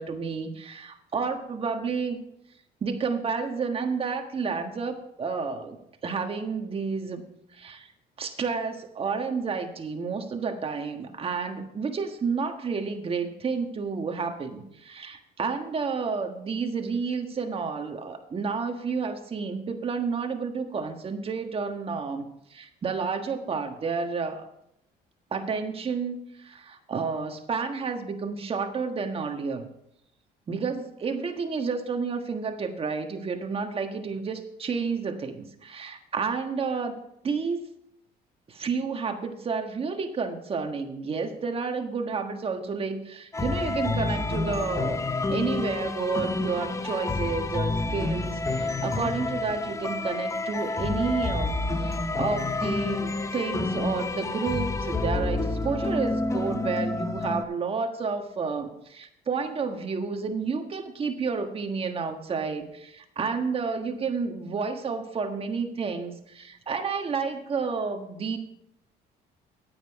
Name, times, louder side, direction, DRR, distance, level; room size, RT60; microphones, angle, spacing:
voice 1, 0.0-2.2 2.8-5.8 6.0-7.2 7.5-7.9 8.2-22.2 22.5-24.5 25.3-29.6 30.5-37.0 37.2-37.6 38.5-68.4, right 5 dB, 35° right, 5 dB, 1.5 m, -30 dB
sound 1, 43.3-57.4, left 3 dB, 20° left, 0.6 m, -29 dB
9.9 x 9.3 x 4.8 m, 0.77 s
cardioid pair, 110°, 17 cm